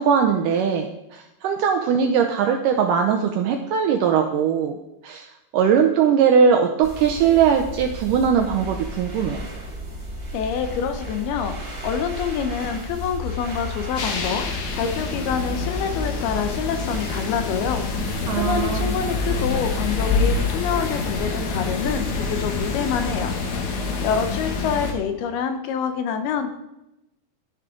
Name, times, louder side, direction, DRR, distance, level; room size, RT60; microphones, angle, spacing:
voice 1, 0.0-4.8 5.0-5.3 5.5-9.4 18.3-19.0, right 7 dB, 80° right, 4 dB, 1.9 m, -20 dB
sound 1, 6.8-23.7, equal, 20° right, 1.9 m, -34 dB
voice 2, 10.3-26.5, left 7 dB, 80° left, 7 dB, 2.8 m, -27 dB
sound 2, 14.0-24.9, left 4 dB, 60° left, 2.1 m, -27 dB
12.0 x 10.5 x 3.8 m, 0.89 s
omnidirectional pair, 4.5 m